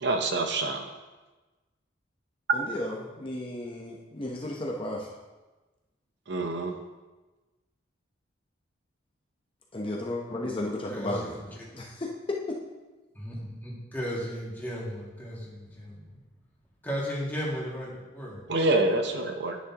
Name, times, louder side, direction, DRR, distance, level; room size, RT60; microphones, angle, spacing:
voice 1, 0.0-0.9 6.3-6.7 18.5-19.6, right 2 dB, 60° right, 4 dB, 0.8 m, -26 dB
voice 2, 2.5-5.1 9.7-11.3 11.7-12.1, left 1 dB, 25° left, -1 dB, 0.8 m, -34 dB
voice 3, 10.9-11.7 13.1-16.2 16.8-18.4, equal, 10° left, -6 dB, 2.1 m, -35 dB
10.0 x 9.3 x 2.9 m, 1.2 s
head